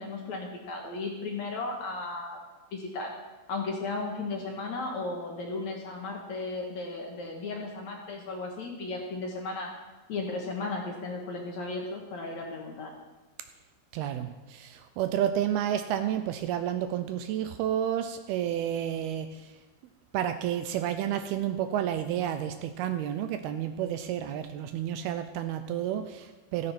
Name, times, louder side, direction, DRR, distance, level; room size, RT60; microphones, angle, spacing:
voice 1, 0.0-2.4 2.7-3.2 3.5-9.7 10.1-12.9, left 3 dB, 55° left, 0 dB, 2.3 m, -35 dB
voice 2, 13.9-19.5 20.1-26.7, right 10 dB, 80° right, 9 dB, 2.4 m, -30 dB
15.5 x 14.0 x 4.3 m, 1.1 s
omnidirectional pair, 4.8 m